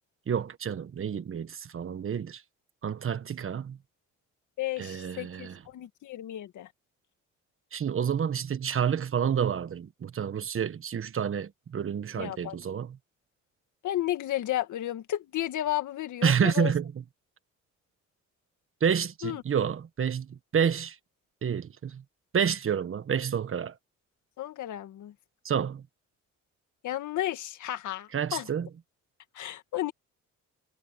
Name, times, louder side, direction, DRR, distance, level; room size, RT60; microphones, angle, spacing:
voice 1, 0.3-2.4 2.8-3.8 4.8-5.6 7.7-13.0 16.2-16.9 18.8-21.0 21.4-22.0 22.3-23.8 25.4-25.8 28.1-28.7, right 7 dB, 45° right, 1.4 m, -29 dB
voice 2, 4.6-6.7 12.2-12.6 13.8-16.7 19.2-19.4 24.4-25.1 26.8-28.5 29.3-29.9, left 13 dB, 75° left, 1.9 m, -33 dB
cardioid pair, 90°, 30 cm